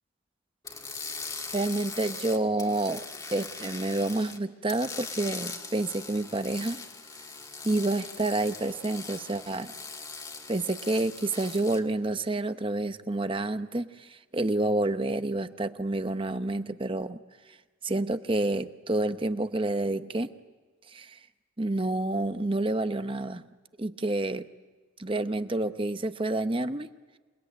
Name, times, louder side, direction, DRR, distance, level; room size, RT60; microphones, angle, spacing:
sound 1, 0.6-4.4 4.7-11.8, left 4 dB, 20° left, 1.9 m, -40 dB
voice 1, 1.5-3.0 3.3-6.8 7.6-9.7 10.5-17.2 17.8-20.3 20.9-21.2 21.6-23.4 23.8-24.5 25.0-26.9, right 2 dB, 25° right, 10 dB, 0.8 m, -29 dB
28.0 x 20.5 x 9.3 m, 1.3 s
head